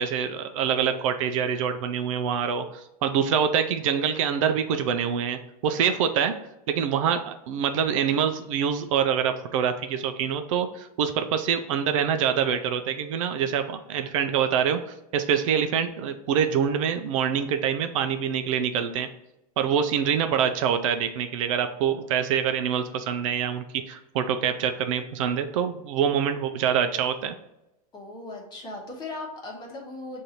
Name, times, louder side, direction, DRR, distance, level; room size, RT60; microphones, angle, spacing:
voice 1, 0.0-6.3 6.7-19.1 19.6-27.3, right 8 dB, 55° right, 8 dB, 0.5 m, -25 dB
voice 2, 27.9-30.2, left 2 dB, 20° left, 0 dB, 1.1 m, -38 dB
6.3 x 2.7 x 2.8 m, 0.90 s
supercardioid pair, 145°, 19 cm